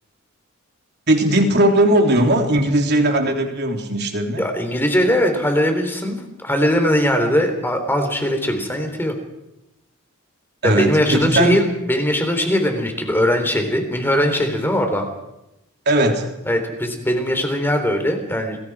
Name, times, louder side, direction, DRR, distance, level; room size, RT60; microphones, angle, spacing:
voice 1, 1.1-4.5 10.6-11.6 15.8-16.3, right 1 dB, 50° right, 3 dB, 3.3 m, -18 dB
voice 2, 4.4-9.2 10.6-15.1 16.5-18.6, equal, 10° left, 5 dB, 3.7 m, -20 dB
28.5 x 21.0 x 4.9 m, 0.88 s
head